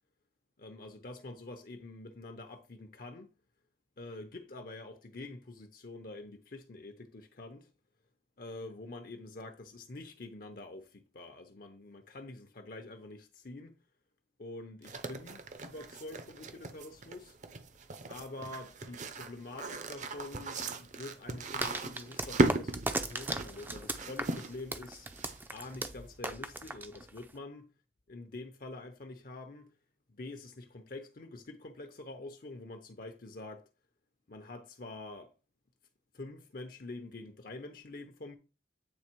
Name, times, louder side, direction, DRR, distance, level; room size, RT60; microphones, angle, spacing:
voice 1, 0.6-3.3 4.0-7.7 8.4-13.8 14.4-17.4 18.1-25.1 25.5-27.6 28.1-29.7 30.1-33.7 34.3-35.3 36.1-38.4, left 2 dB, 55° left, 0.8 m, -46 dB
sound 1, 14.8-25.7, right 2 dB, 45° right, 0.8 m, -37 dB
sound 2, 21.6-27.4, right 2 dB, 10° right, 0.5 m, -38 dB
8.6 x 3.5 x 4.5 m
head